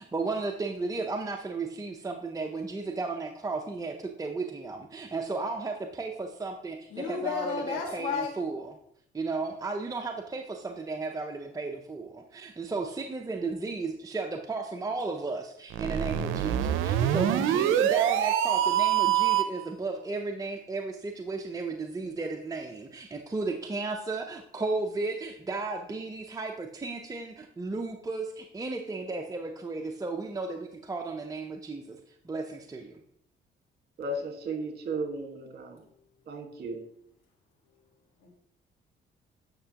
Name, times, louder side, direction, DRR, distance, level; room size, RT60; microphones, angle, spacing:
voice 1, 0.0-8.6 9.1-32.0 32.2-33.0, right 3 dB, 15° right, 3 dB, 0.6 m, -34 dB
voice 2, 6.9-8.4 38.2-38.3, left 5 dB, 90° left, -2 dB, 1.6 m, -32 dB
sound 1, 15.7-19.6, right 11 dB, 90° right, 0.5 m, -25 dB
voice 3, 34.0-35.8 36.3-36.8, right 2 dB, 55° right, 4 dB, 1.6 m, -35 dB
9.1 x 6.0 x 2.9 m, 0.71 s
cardioid pair, 90°, 20 cm